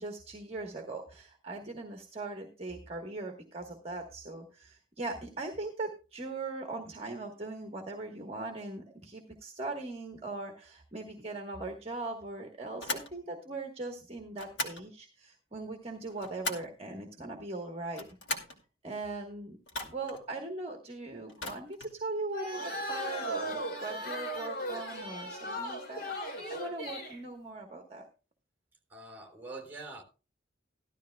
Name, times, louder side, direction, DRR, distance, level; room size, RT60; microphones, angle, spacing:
voice 1, 0.0-18.1 18.8-22.6 22.9-28.1, right 2 dB, 30° right, 1.3 m, -40 dB
sound 1, 12.8-13.1 14.3-14.8 15.9-16.8 17.8-18.6 19.7-20.2 21.3-22.0, left 2 dB, 90° left, 2.4 m, -38 dB
sound 2, 22.3-27.2, equal, 55° left, 2.9 m, -37 dB
voice 2, 28.9-30.0, right 2 dB, 10° right, 3.5 m, -44 dB
15.5 x 12.5 x 2.3 m
head